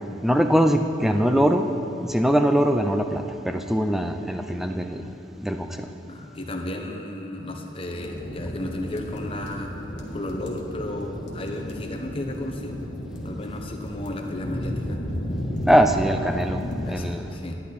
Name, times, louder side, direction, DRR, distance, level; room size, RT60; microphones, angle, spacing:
voice 1, 0.2-1.7 2.0-5.0 5.4-5.9 15.7-17.3, equal, ahead, 6 dB, 0.4 m, -22 dB
voice 2, 6.1-9.7 10.1-12.8 13.2-15.0 16.8-17.5, left 1 dB, 30° left, 2 dB, 1.0 m, -33 dB
sound 1, 7.9-16.9, equal, 70° left, 1.5 m, -33 dB
11.0 x 10.5 x 4.2 m, 3.0 s
head